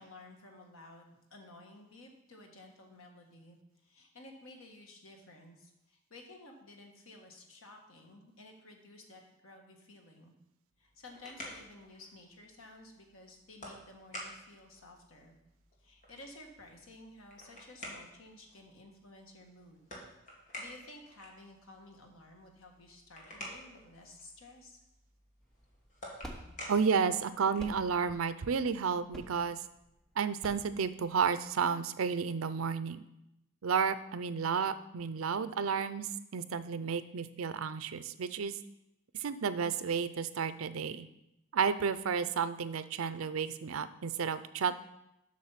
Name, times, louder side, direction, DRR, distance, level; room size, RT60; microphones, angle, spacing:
voice 1, 0.0-10.3 10.8-15.4 15.8-19.9 20.6-24.8, left 2 dB, 80° left, 2 dB, 1.6 m, -54 dB
sound 1, 10.7-27.8, left 1 dB, 40° left, 2.0 m, -51 dB
sound 2, 25.4-31.6, equal, 5° left, 1.0 m, -49 dB
voice 2, 26.7-29.6 30.2-33.0 33.6-38.6 39.2-41.1 41.5-44.8, right 6 dB, 90° right, 14 dB, 0.5 m, -32 dB
7.5 x 6.2 x 5.7 m, 0.87 s
head